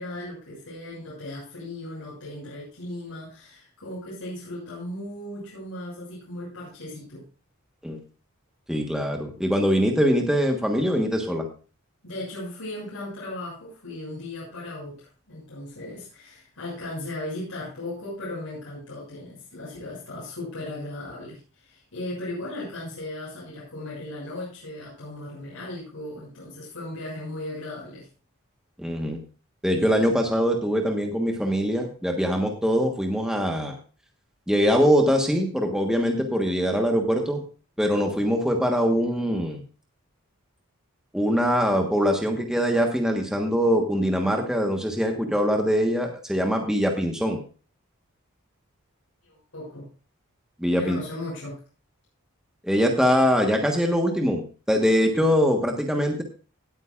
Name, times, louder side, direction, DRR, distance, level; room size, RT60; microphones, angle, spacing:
voice 1, 0.0-7.2 12.0-28.1 49.2-49.9 50.8-51.6, left 1 dB, 80° left, -8 dB, 6.5 m, -37 dB
voice 2, 8.7-11.4 28.8-29.2 29.6-33.8 34.5-37.4 37.8-39.6 41.1-47.4 50.6-51.0 52.6-56.2, equal, 5° right, 3 dB, 1.2 m, -23 dB
19.0 x 9.0 x 2.4 m, 0.36 s
head